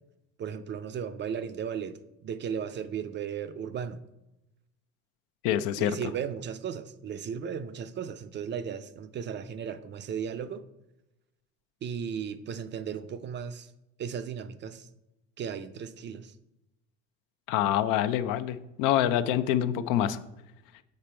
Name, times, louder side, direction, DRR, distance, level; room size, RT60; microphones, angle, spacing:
voice 1, 0.4-2.0 2.2-4.0 5.8-10.6 11.8-13.7 14.0-14.9 15.4-16.3, right 7 dB, 35° right, 0.4 m, -35 dB
voice 2, 5.4-6.1 17.5-20.2, left 11 dB, 75° left, 0.5 m, -26 dB
6.8 x 5.1 x 4.4 m
cardioid pair, 110°, 32 cm